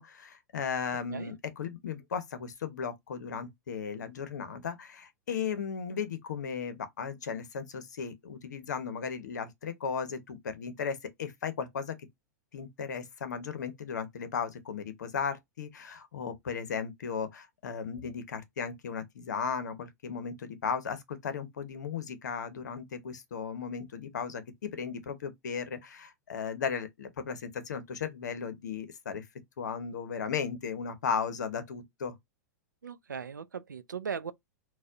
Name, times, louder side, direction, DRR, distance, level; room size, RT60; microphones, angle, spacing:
voice 1, 0.0-12.0 12.5-29.3 29.6-32.1, left 6 dB, 75° left, 0.8 m, -36 dB
voice 2, 32.8-34.3, right 6 dB, 90° right, 0.4 m, -38 dB
4.1 x 2.3 x 2.5 m
hypercardioid pair, 100°, 10 cm